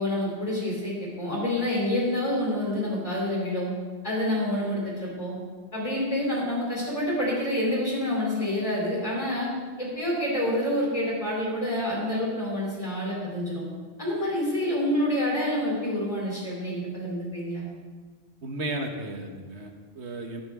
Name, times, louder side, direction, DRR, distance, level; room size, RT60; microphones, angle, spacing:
voice 1, 0.0-3.7 4.0-5.4 5.7-9.5 9.8-13.6 14.0-17.7, left 1 dB, 35° left, -6 dB, 3.7 m, -27 dB
voice 2, 18.4-20.4, right 1 dB, 85° right, 3 dB, 1.6 m, -34 dB
15.0 x 10.0 x 3.6 m, 1.5 s
omnidirectional pair, 1.1 m